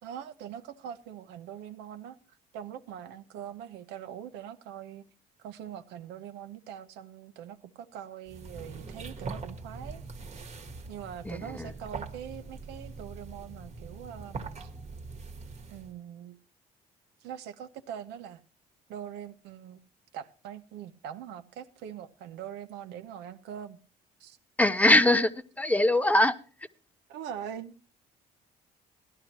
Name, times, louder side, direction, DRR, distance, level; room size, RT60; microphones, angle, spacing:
voice 1, 0.0-2.2 2.5-5.0 5.4-10.0 10.9-14.7 15.7-16.4 17.2-18.4 18.9-19.8 20.1-23.8 24.2-24.4 27.1-27.8, right 9 dB, 90° right, 0.8 m, -42 dB
sound 1, 8.3-16.0, right 4 dB, 40° right, 1.3 m, -42 dB
voice 2, 11.2-11.7 24.6-25.3 25.6-26.4, left 1 dB, 10° left, 0.6 m, -22 dB
16.5 x 12.0 x 3.0 m
cardioid pair, 110°, 17 cm